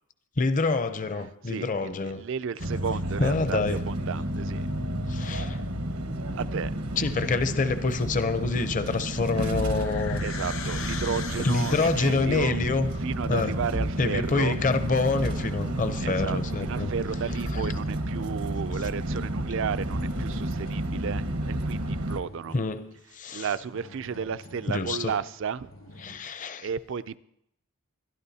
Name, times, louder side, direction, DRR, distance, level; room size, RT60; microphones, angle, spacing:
voice 1, 0.4-2.2 3.2-3.8 5.1-5.6 7.0-10.2 11.4-12.9 13.3-13.5 14.0-16.9 17.5-17.6 22.5-23.5 24.7-25.1 26.0-26.7, left 3 dB, 35° left, 10 dB, 0.6 m, -27 dB
voice 2, 1.5-4.6 6.4-6.7 10.2-12.6 13.0-14.6 16.0-22.5 23.3-25.7 26.6-27.2, right 6 dB, 55° right, 15 dB, 0.4 m, -33 dB
sound 1, 2.6-22.2, right 1 dB, 85° right, 1.2 m, -31 dB
sound 2, 9.0-12.4, left 7 dB, 60° left, 1.0 m, -39 dB
sound 3, 14.5-21.1 21.6-26.2, left 1 dB, 80° left, 5.6 m, -49 dB
22.5 x 12.0 x 2.8 m, 0.78 s
head